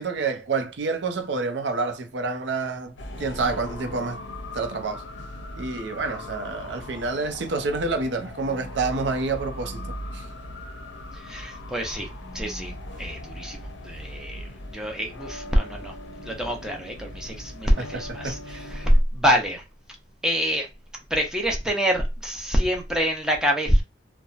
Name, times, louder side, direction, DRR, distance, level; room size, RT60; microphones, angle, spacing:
voice 1, 0.0-4.2 4.5-5.1 5.6-10.3 17.8-18.6, right 3 dB, 75° right, 0.5 m, -28 dB
sound 1, 3.0-19.0, left 1 dB, 85° left, 0.5 m, -39 dB
voice 2, 11.3-12.1 12.3-12.7 13.0-14.4 14.7-15.9 16.2-18.4 18.7-19.6 20.2-20.7 21.1-23.8, equal, 5° right, 0.7 m, -25 dB
2.8 x 2.1 x 2.4 m
head